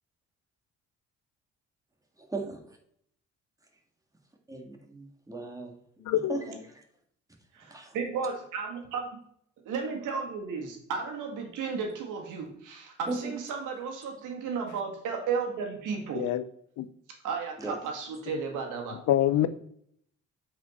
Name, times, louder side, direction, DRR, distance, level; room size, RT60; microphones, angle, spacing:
voice 1, 4.5-5.7 6.3-6.4 7.7-7.9 13.1-13.2 17.6-17.7, right 2 dB, 10° right, 2 dB, 1.8 m, -36 dB
voice 2, 6.0-6.6 16.1-16.4 16.8-16.9 19.1-19.5, left 12 dB, 75° left, 14 dB, 0.6 m, -25 dB
voice 3, 7.5-9.0 9.7-16.3 17.2-19.0, right 5 dB, 90° right, 3 dB, 2.0 m, -34 dB
8.2 x 5.0 x 4.3 m, 0.67 s
cardioid pair, 90°, 30 cm